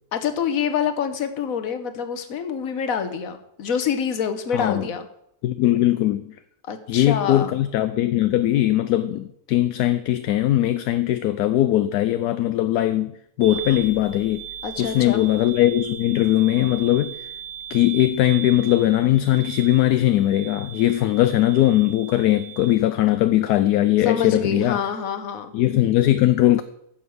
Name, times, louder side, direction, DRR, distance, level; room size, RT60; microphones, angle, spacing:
voice 1, 0.1-5.1 6.6-7.6 14.6-15.2 24.0-25.5, left 7 dB, 60° left, 1.4 m, -26 dB
voice 2, 4.5-4.9 5.4-6.3 6.9-13.1 13.4-14.4 14.8-17.3 17.7-24.8 25.5-26.6, left 14 dB, 75° left, 1.1 m, -20 dB
sound 1, 13.4-22.8, right 8 dB, 75° right, 1.6 m, -38 dB
10.5 x 7.4 x 6.3 m
omnidirectional pair, 1.8 m